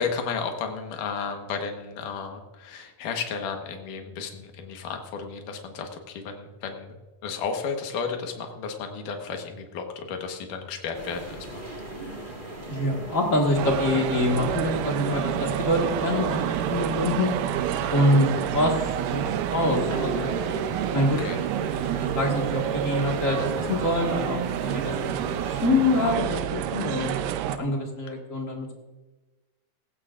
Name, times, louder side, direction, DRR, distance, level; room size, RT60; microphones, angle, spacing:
voice 1, 0.0-7.0 7.2-11.6 12.0-12.3 21.2-21.4, left 5 dB, 75° left, 4 dB, 2.8 m, -33 dB
sound 1, 10.9-26.1, right 1 dB, 35° right, 0.8 m, -38 dB
voice 2, 12.7-17.4 17.9-20.3 20.9-21.2 21.7-27.2 27.5-28.7, left 1 dB, 35° left, 0 dB, 1.3 m, -25 dB
sound 2, 13.6-27.6, right 10 dB, 80° right, 2.3 m, -29 dB
17.5 x 15.0 x 2.5 m, 1.2 s
omnidirectional pair, 3.9 m